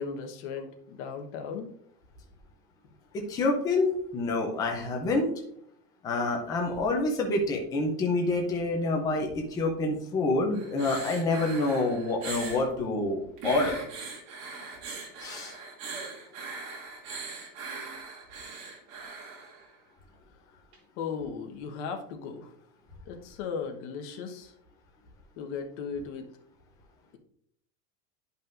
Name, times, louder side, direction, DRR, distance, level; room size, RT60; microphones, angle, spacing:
voice 1, 0.0-1.7 21.0-22.5 23.1-24.5 25.4-26.4, left 5 dB, 45° left, 4 dB, 1.2 m, -36 dB
voice 2, 3.1-5.3 6.0-13.8 15.2-15.5, left 2 dB, 10° left, 1 dB, 0.4 m, -27 dB
sound 1, 10.5-12.7 13.4-19.7 20.7-20.8, right 4 dB, 45° right, 2.5 m, -40 dB
10.5 x 5.5 x 2.5 m, 0.66 s
supercardioid pair, 160°, 47 cm